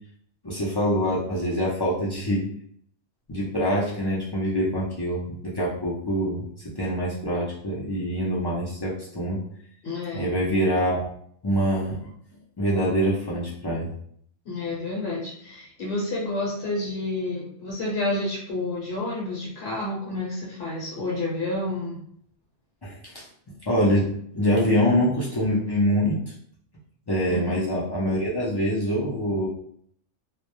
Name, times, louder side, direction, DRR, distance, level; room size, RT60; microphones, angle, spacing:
voice 1, 0.4-2.5 3.3-9.4 10.1-11.1 11.4-12.0 12.6-13.9 22.8-23.2 23.7-26.2 27.1-29.5, equal, 40° left, -6 dB, 0.3 m, -25 dB
voice 2, 9.8-10.3 14.5-22.0 27.3-27.6, left 2 dB, 65° left, -5 dB, 0.9 m, -30 dB
2.2 x 2.1 x 2.9 m, 0.65 s
omnidirectional pair, 1.2 m